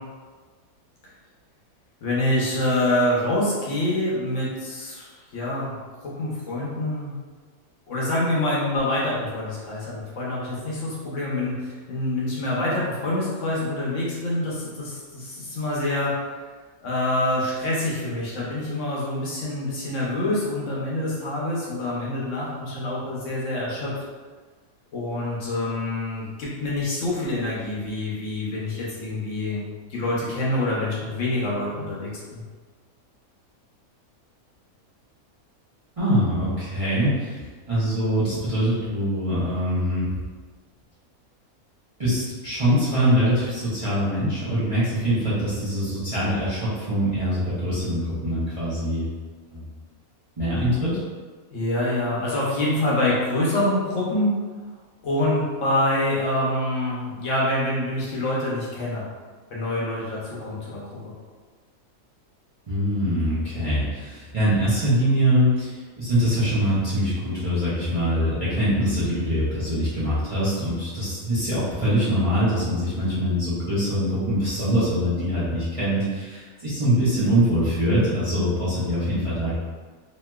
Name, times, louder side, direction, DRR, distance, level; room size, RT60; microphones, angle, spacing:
voice 1, 2.0-5.8 6.2-7.1 7.9-16.1 16.8-23.9 24.9-32.4 51.5-54.3 55.0-59.1 59.5-61.1, left 1 dB, 65° left, -6 dB, 1.0 m, -26 dB
voice 2, 36.0-37.4 37.7-40.1 42.0-49.1 49.5-49.6 50.4-51.0 62.7-79.5, equal, 30° right, -12 dB, 0.6 m, -23 dB
3.0 x 2.8 x 2.2 m, 1.4 s
omnidirectional pair, 1.5 m